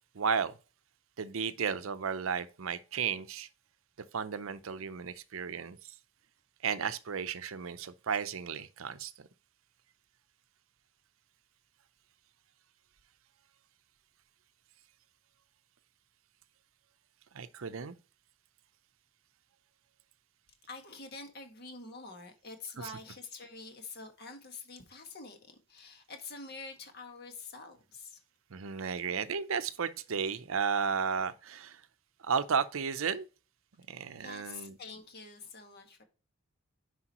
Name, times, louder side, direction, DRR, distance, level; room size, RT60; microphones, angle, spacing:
voice 1, 0.1-0.6 1.2-3.5 4.1-5.9 6.6-9.3 17.3-17.9 28.5-31.8 32.2-33.3 33.9-34.7, right 6 dB, 75° right, 0.6 m, -33 dB
voice 2, 20.7-28.2 34.2-36.0, left 3 dB, 50° left, 1.6 m, -46 dB
9.9 x 5.0 x 3.0 m
head